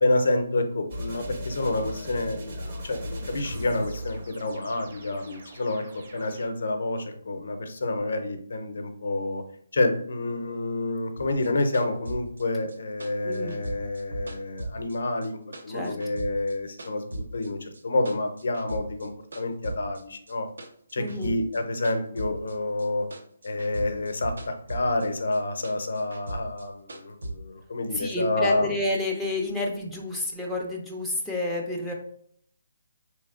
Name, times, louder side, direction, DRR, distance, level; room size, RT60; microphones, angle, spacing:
voice 1, 0.0-5.8 6.1-9.4 9.7-15.4 15.6-20.5 20.9-23.0 23.4-28.7, left 2 dB, 70° left, 6 dB, 0.5 m, -28 dB
sound 1, 0.9-6.4, equal, 45° right, 0.8 m, -38 dB
sound 2, 11.2-15.3 15.5-17.5 17.7-19.1 19.3-22.9 23.1-25.1 25.3-27.3, right 1 dB, 85° right, 0.6 m, -38 dB
voice 2, 13.2-13.6 15.7-16.0 21.0-21.4 27.9-31.9, left 2 dB, ahead, -4 dB, 0.4 m, -30 dB
3.4 x 3.1 x 2.4 m, 0.63 s
hypercardioid pair, 165°, 0 cm